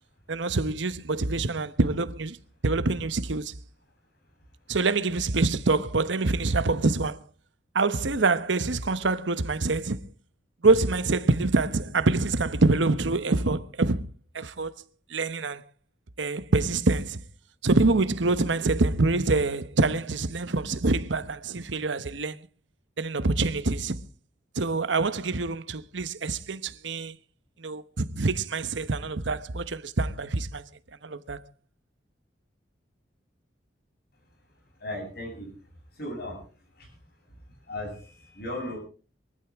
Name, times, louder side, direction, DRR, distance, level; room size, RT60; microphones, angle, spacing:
voice 1, 0.3-2.4 2.6-3.5 4.7-7.2 7.7-10.0 10.6-14.1 14.3-14.7 15.1-15.6 16.2-17.2 17.6-22.4 23.0-24.0 24.6-27.1 27.6-30.6 31.0-31.4, right 3 dB, 80° right, 1.0 m, -25 dB
voice 2, 34.8-35.5 36.0-36.4 36.8-36.9 37.7-38.8, left 1 dB, 55° left, 7.4 m, -36 dB
22.5 x 15.0 x 3.5 m
head